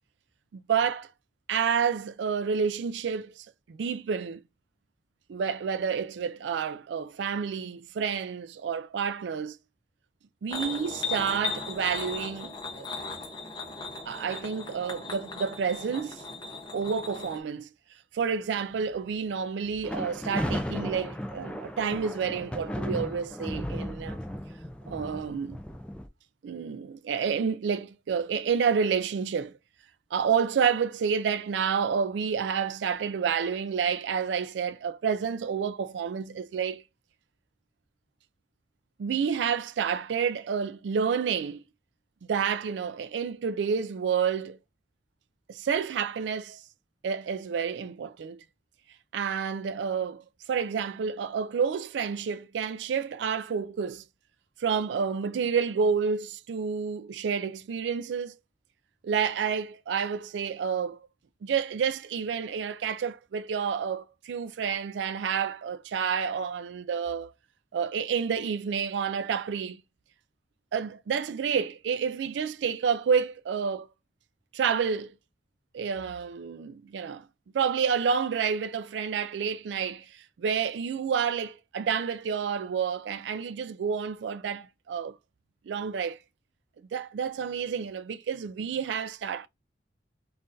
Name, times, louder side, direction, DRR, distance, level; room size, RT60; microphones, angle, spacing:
voice 1, 0.5-1.1 1.5-4.4 5.3-9.6 10.4-12.9 14.1-16.2 16.7-17.7 18.1-24.2 24.9-25.6 26.4-29.5 30.1-36.8 39.0-41.6 42.3-44.6 45.5-46.6 47.0-48.4 49.1-54.0 54.6-58.3 59.0-61.0 61.4-67.3 67.7-69.8 70.7-73.9 74.5-75.1 75.7-77.3 77.5-85.2 85.7-86.2 86.9-89.5, right 6 dB, 90° right, 0.4 m, -29 dB
sound 1, 10.5-17.4, left 4 dB, 25° left, 0.8 m, -37 dB
sound 2, 19.7-26.1, equal, 5° left, 0.4 m, -35 dB
5.6 x 2.5 x 2.5 m
head